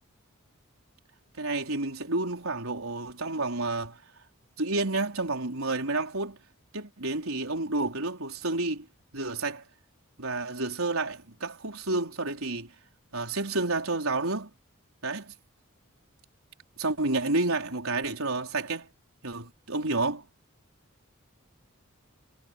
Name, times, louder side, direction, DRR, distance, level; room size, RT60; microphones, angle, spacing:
voice 1, 1.4-4.0 4.6-6.4 6.7-8.9 9.1-9.6 10.2-12.7 13.1-14.5 15.0-15.3 16.8-18.9 19.2-20.2, right 2 dB, 80° right, 4.4 m, -30 dB
head